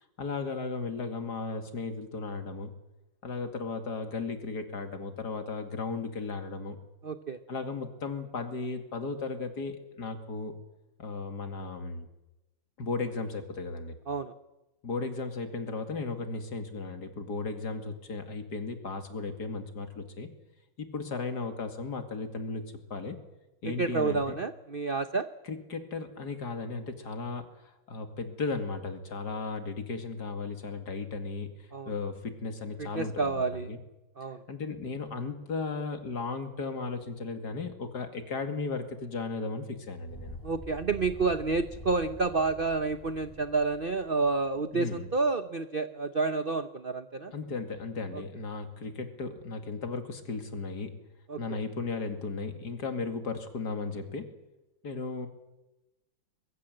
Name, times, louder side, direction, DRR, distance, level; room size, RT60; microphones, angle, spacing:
voice 1, 0.2-2.7 3.2-6.8 7.5-10.5 11.0-12.1 12.8-13.9 14.8-20.3 20.8-23.2 23.6-24.3 25.4-33.8 34.5-40.4 44.7-45.1 47.3-51.0 51.4-54.3 54.8-55.3, left 4 dB, 50° left, 7 dB, 2.7 m, -35 dB
voice 2, 7.0-7.4 14.1-14.3 23.6-25.3 31.7-31.9 32.8-33.7 34.2-34.4 40.4-47.3 48.1-48.2 51.3-51.6, right 4 dB, 65° right, 11 dB, 0.5 m, -29 dB
sound 1, 40.1-44.6, left 1 dB, 10° left, 5.6 m, -47 dB
23.0 x 22.0 x 7.8 m, 0.99 s
omnidirectional pair, 2.3 m